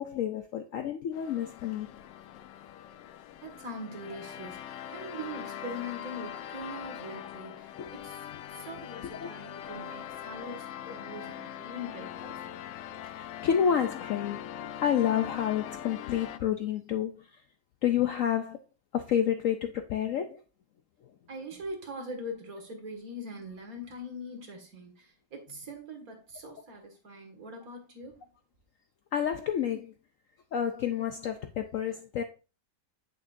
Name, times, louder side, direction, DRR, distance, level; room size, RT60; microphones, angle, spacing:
voice 1, 0.0-1.9 7.8-7.9 9.0-9.3 13.0-14.4 14.8-17.2 17.8-18.6 18.9-20.4 29.1-29.9 30.5-32.2, left 9 dB, 70° left, 0.8 m, -29 dB
sound 1, 1.1-16.4, left 10 dB, 85° left, 1.2 m, -42 dB
voice 2, 3.4-8.2 8.5-12.5 21.3-28.1, equal, 55° right, 2.2 m, -42 dB
8.6 x 6.7 x 2.6 m
omnidirectional pair, 1.9 m